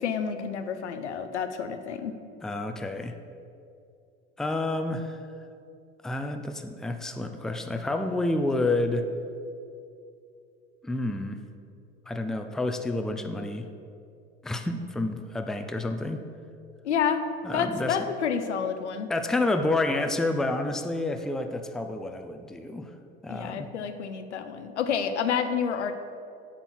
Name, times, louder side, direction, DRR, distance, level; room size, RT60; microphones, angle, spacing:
voice 1, 0.0-2.1 16.8-19.1 23.3-25.9, left 7 dB, 90° left, 9 dB, 0.6 m, -29 dB
voice 2, 2.4-3.1 4.4-5.2 6.0-9.1 10.8-11.4 12.1-13.7 14.4-16.2 17.4-18.0 19.1-22.9 23.2-23.7, left 2 dB, ahead, 6 dB, 0.4 m, -29 dB
8.0 x 4.4 x 6.1 m, 2.5 s
hypercardioid pair, 80°, 34 cm